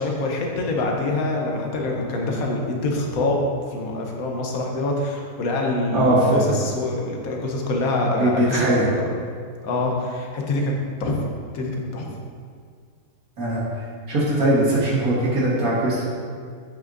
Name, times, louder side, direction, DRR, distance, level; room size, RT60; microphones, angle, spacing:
voice 1, 0.0-3.4 3.7-9.1 9.6-10.7 11.0-11.2 11.5-12.2, left 2 dB, 65° left, 0 dB, 1.3 m, -25 dB
voice 2, 5.9-6.5 8.2-8.9 13.4-13.6 14.1-16.0, right 1 dB, 65° right, -7 dB, 1.8 m, -20 dB
7.9 x 6.0 x 2.6 m, 2.1 s
omnidirectional pair, 1.7 m